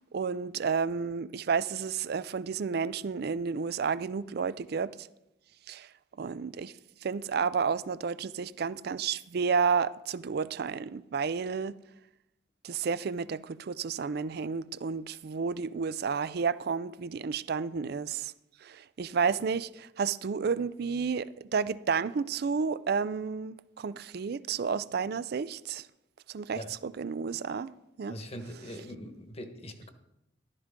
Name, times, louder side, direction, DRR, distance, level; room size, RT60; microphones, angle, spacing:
voice 1, 0.0-5.1 5.7-5.9 6.2-6.7 7.0-11.8 12.6-18.3 18.6-25.9 26.3-27.7 28.0-28.2, right 5 dB, 55° right, 0.4 m, -31 dB
voice 2, 28.1-29.9, equal, 35° left, 1.2 m, -42 dB
14.0 x 12.0 x 3.7 m
head